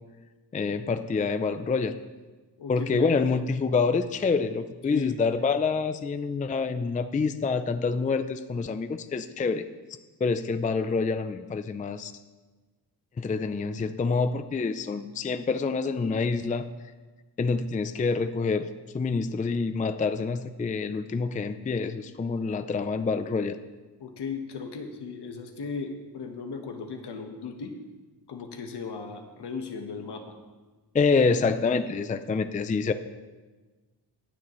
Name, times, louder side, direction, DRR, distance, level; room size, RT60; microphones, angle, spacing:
voice 1, 0.5-2.0 2.7-9.6 10.2-12.1 13.2-16.6 17.4-18.7 18.9-23.6 30.9-32.9, left 4 dB, 20° left, 11 dB, 0.4 m, -27 dB
voice 2, 2.6-3.1 4.9-5.1 24.0-27.7 28.3-30.2, left 5 dB, 70° left, 5 dB, 1.3 m, -36 dB
20.0 x 6.7 x 3.1 m, 1.3 s
cardioid pair, 85°, 42 cm